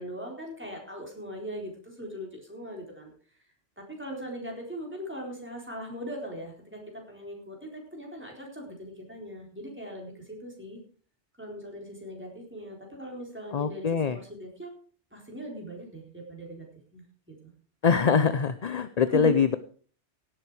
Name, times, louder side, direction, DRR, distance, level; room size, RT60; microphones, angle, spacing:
voice 1, 0.0-3.4 3.8-10.8 11.4-14.7 15.1-16.7 16.9-17.5 19.1-19.4, equal, 10° right, 0 dB, 4.1 m, -40 dB
voice 2, 13.5-14.2 17.8-19.6, left 6 dB, 45° left, 12 dB, 0.6 m, -23 dB
17.0 x 7.8 x 4.8 m, 0.43 s
omnidirectional pair, 1.2 m